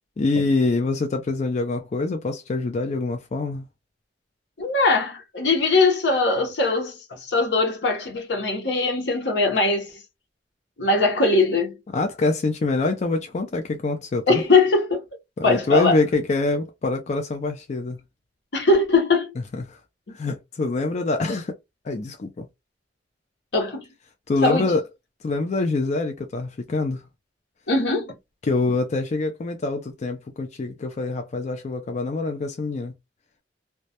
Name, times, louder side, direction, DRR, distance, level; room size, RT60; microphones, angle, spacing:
voice 1, 0.2-3.7 11.9-14.4 15.4-18.0 19.5-19.8 20.1-21.5 21.8-22.5 24.3-24.8 25.2-27.0 28.4-32.9, left 3 dB, 40° left, 0.4 m, -25 dB
voice 2, 4.6-9.9 10.8-11.8 14.3-15.0 15.4-16.0 18.5-19.3 20.1-20.2 23.5-23.9 24.4-24.7 27.7-28.1, left 3 dB, 75° left, 0.8 m, -21 dB
2.2 x 2.0 x 2.7 m
head